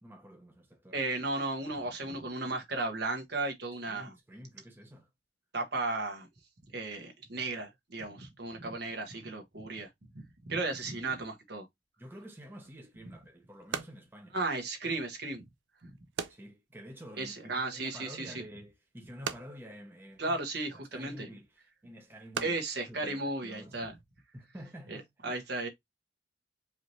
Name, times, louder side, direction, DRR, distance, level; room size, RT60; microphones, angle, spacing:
voice 1, 0.0-1.0 3.8-5.1 8.7-9.2 12.0-14.4 16.3-20.4 20.7-22.6 22.9-23.8 24.3-25.1, equal, 10° right, 0.8 m, -49 dB
voice 2, 0.9-4.1 5.5-6.3 6.7-9.9 10.5-11.7 14.3-15.4 15.8-15.9 17.2-18.3 20.2-21.3 22.4-23.9 24.9-25.7, right 2 dB, 60° right, 1.3 m, -35 dB
sound 1, 12.6-24.0, right 6 dB, 80° right, 0.5 m, -45 dB
4.8 x 2.7 x 3.1 m
head